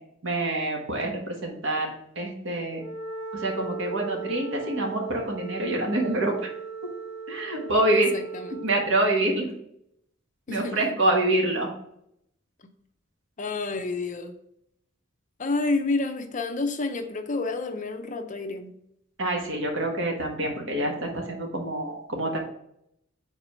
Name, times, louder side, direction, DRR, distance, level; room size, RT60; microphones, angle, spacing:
voice 1, 0.2-1.9 2.1-2.8 3.3-6.5 7.3-8.1 8.6-9.5 10.5-11.7 19.2-22.4, right 1 dB, 65° right, 1 dB, 1.5 m, -26 dB
Wind instrument woodwind instrument, 2.7-9.0, right 5 dB, 10° right, 0.8 m, -37 dB
voice 2, 7.6-8.7 10.5-11.0 12.6-12.7 13.4-14.3 15.4-18.7, left 3 dB, 40° left, 6 dB, 0.6 m, -30 dB
4.7 x 4.1 x 5.6 m, 0.75 s
head